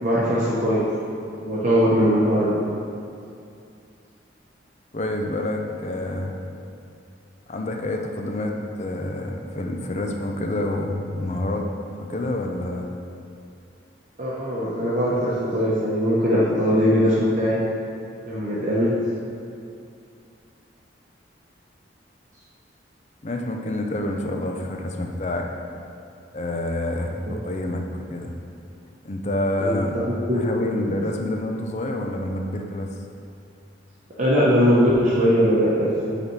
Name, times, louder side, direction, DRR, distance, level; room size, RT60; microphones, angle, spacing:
voice 1, 0.0-0.8 1.4-2.6 14.2-17.6 18.3-18.9 29.6-30.4 30.9-31.0 34.2-36.2, equal, 40° right, -8 dB, 0.9 m, -20 dB
voice 2, 4.9-6.4 7.5-11.7 12.0-12.9 23.2-25.5 26.3-28.3 29.0-30.0 30.3-32.9, left 1 dB, 40° left, 2 dB, 0.6 m, -28 dB
8.5 x 4.2 x 4.7 m, 2.6 s
head